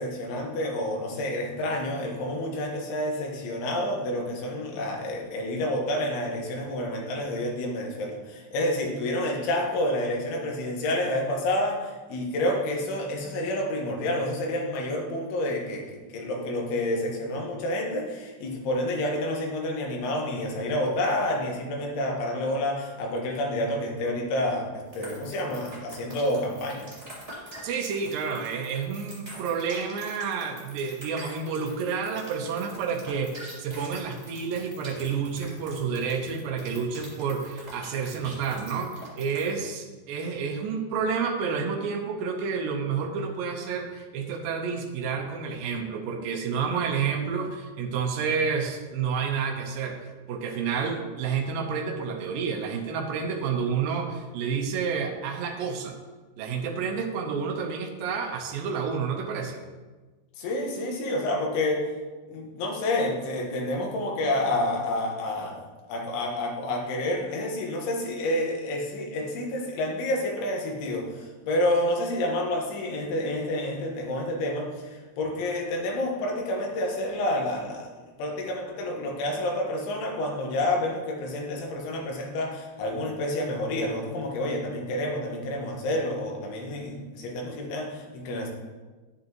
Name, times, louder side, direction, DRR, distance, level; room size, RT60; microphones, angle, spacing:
voice 1, 0.0-15.9 16.1-26.9 60.4-61.8 62.3-65.6 65.9-77.9 78.2-88.5, left 1 dB, 90° left, 0 dB, 3.8 m, -29 dB
sound 1, 24.9-39.6, right 1 dB, 10° right, 1.9 m, -45 dB
voice 2, 27.6-55.9 56.4-59.6, right 6 dB, 85° right, 2 dB, 2.0 m, -30 dB
10.0 x 9.5 x 3.0 m, 1.3 s
omnidirectional pair, 5.3 m